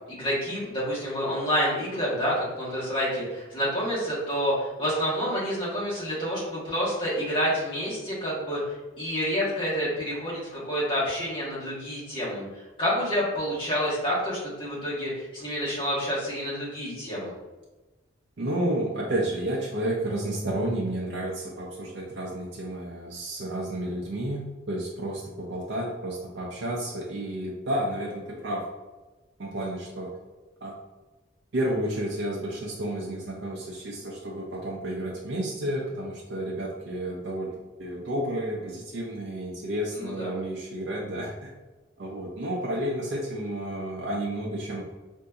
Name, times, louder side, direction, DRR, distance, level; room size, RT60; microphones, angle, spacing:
voice 1, 0.1-12.5 12.8-17.3 40.0-40.3, equal, 25° left, -8 dB, 1.3 m, -28 dB
voice 2, 18.4-28.7 29.4-30.1 30.6-30.7 31.5-41.5 42.0-44.8, right 1 dB, 65° right, -3 dB, 0.5 m, -31 dB
3.9 x 2.6 x 2.3 m, 1.2 s
head